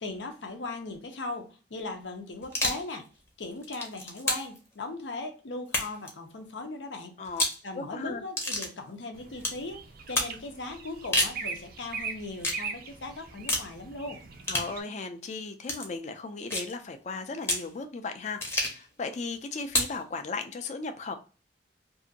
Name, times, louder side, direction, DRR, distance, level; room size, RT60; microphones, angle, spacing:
voice 1, 0.0-3.1 3.4-7.2 7.6-14.2, left 2 dB, 90° left, 5 dB, 0.7 m, -38 dB
sound 1, 2.4-2.9 3.5-4.6 5.7-6.1 7.2-7.6 8.4-8.7 9.4-9.6 10.1-10.3 10.9-11.4 12.4-12.6 13.5-13.7 14.4-14.7 15.6-15.9 16.5-16.7 17.4-17.7 18.4-18.8 19.7-20.0, left 1 dB, 15° left, 0.7 m, -29 dB
voice 2, 7.7-8.2 14.5-21.2, left 4 dB, 40° left, 7 dB, 0.4 m, -36 dB
sound 2, 9.1-14.8, right 5 dB, 55° right, 0.4 m, -41 dB
2.7 x 2.5 x 2.6 m, 0.34 s
head